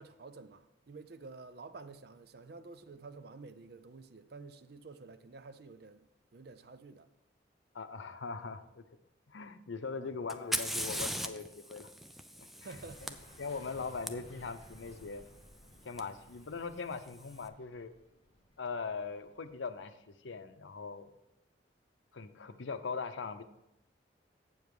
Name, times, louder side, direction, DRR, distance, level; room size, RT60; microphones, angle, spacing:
voice 1, 0.0-6.0 6.3-7.1 9.9-10.1 12.6-13.2, right 3 dB, 55° right, 0.6 m, -50 dB
voice 2, 7.7-8.8 9.3-11.9 13.4-15.2 15.8-17.9 18.6-21.1 22.1-23.4, left 4 dB, 90° left, 0.7 m, -40 dB
Fire, 10.3-14.1 16.0-16.1 16.9-17.3, equal, ahead, 0.3 m, -39 dB
sound 1, 12.7-19.7, left 1 dB, 30° left, 1.8 m, -58 dB
7.8 x 7.1 x 4.8 m
head